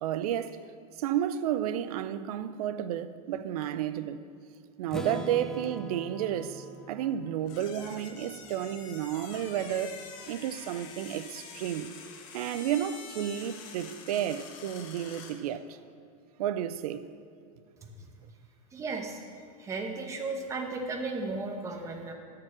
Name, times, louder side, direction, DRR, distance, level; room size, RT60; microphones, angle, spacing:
voice 1, 0.0-4.2 4.8-11.9 12.3-15.8 16.4-17.1, right 10 dB, 75° right, 0.6 m, -32 dB
Strum, 4.9-8.8, right 1 dB, 5° left, 0.3 m, -42 dB
sound 1, 7.4-15.4, left 6 dB, 55° left, 1.3 m, -46 dB
voice 2, 18.7-19.2 19.6-22.1, right 3 dB, 15° right, 1.0 m, -35 dB
13.5 x 4.8 x 7.3 m
supercardioid pair, 160°, 20 cm